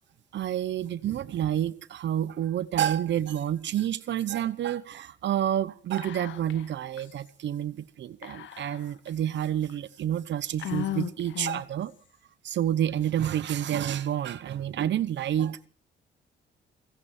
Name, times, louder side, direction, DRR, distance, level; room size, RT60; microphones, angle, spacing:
voice 1, 0.3-11.9 12.4-15.7, right 10 dB, 65° right, 0.9 m, -29 dB
Whispering, 6.0-6.7 7.0-7.1 8.2-9.1 9.7-9.8 10.6-11.8, left 11 dB, 70° left, 1.4 m, -36 dB
29.5 x 9.9 x 4.4 m
cardioid pair, 90°, 20 cm